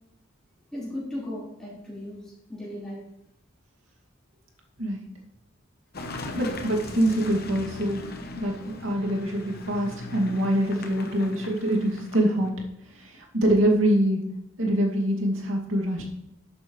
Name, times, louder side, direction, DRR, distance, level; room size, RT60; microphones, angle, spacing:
voice 1, 0.7-2.2 2.5-3.0, left 1 dB, 5° left, -9 dB, 4.4 m, -36 dB
Car passing by / Engine, 5.9-12.5, left 2 dB, 50° left, 1.0 m, -39 dB
voice 2, 6.3-8.1 8.4-12.6 12.9-14.3 14.6-16.0, right 1 dB, 70° right, 0 dB, 2.3 m, -25 dB
11.5 x 8.4 x 3.2 m, 0.81 s
head